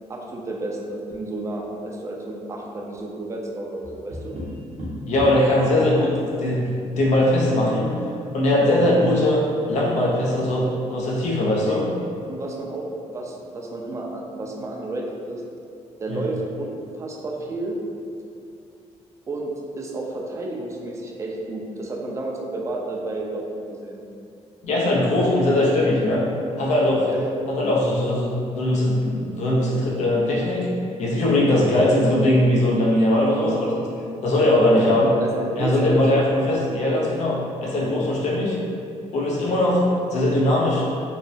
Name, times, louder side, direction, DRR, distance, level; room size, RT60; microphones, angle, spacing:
voice 1, 0.1-4.4 8.9-9.1 11.7-11.9 12.3-15.4 16.0-17.8 19.3-24.0 27.1-27.4 34.7-36.2, right 2 dB, 25° right, -1 dB, 0.3 m, -31 dB
Tap, 3.8-5.5 7.5-8.3, equal, 65° right, 0.7 m, -35 dB
voice 2, 5.1-7.9 8.3-9.4 9.7-11.8 16.1-16.2 24.6-26.3 26.6-27.1 27.5-30.7 31.0-33.9 34.2-35.1 35.6-38.6 39.1-39.8 40.1-40.9, left 1 dB, 70° left, -4 dB, 0.5 m, -20 dB
2.8 x 2.0 x 2.5 m, 2.5 s
cardioid pair, 115°, 12 cm